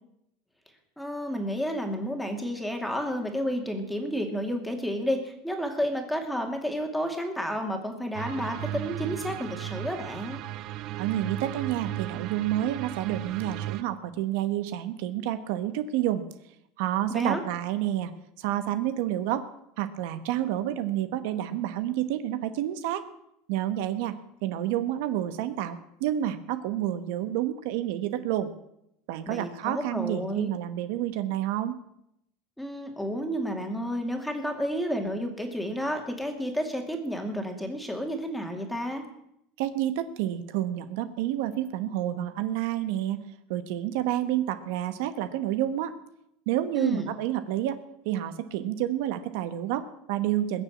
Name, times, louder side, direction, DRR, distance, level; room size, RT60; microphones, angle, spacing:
voice 1, 1.0-10.4 17.1-17.4 29.3-30.5 32.6-39.0 46.7-47.1, equal, ahead, 4 dB, 2.4 m, -31 dB
sound 1, 8.1-13.8, right 14 dB, 45° right, 0.6 m, -36 dB
voice 2, 11.0-16.2 16.8-18.1 18.4-19.5 19.8-23.0 23.5-24.2 24.4-28.5 29.1-31.8 39.6-43.2 43.5-45.9 46.5-47.8 48.0-50.6, right 12 dB, 70° right, 11 dB, 1.2 m, -29 dB
21.0 x 7.1 x 8.6 m, 0.78 s
supercardioid pair, 150°, 0 cm